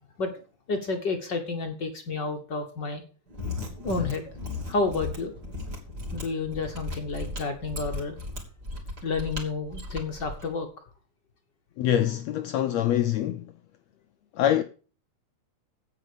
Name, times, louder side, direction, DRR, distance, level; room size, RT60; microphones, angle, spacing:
voice 1, 0.7-3.0 3.8-4.3 4.7-5.3 6.1-8.2 9.0-10.7, left 3 dB, 55° left, 1.2 m, -30 dB
Mechanisms, 3.3-10.5, left 2 dB, 30° right, 3.2 m, -36 dB
voice 2, 11.8-13.5 14.3-14.6, left 11 dB, 80° left, 1.5 m, -24 dB
9.9 x 8.5 x 6.7 m
omnidirectional pair, 3.7 m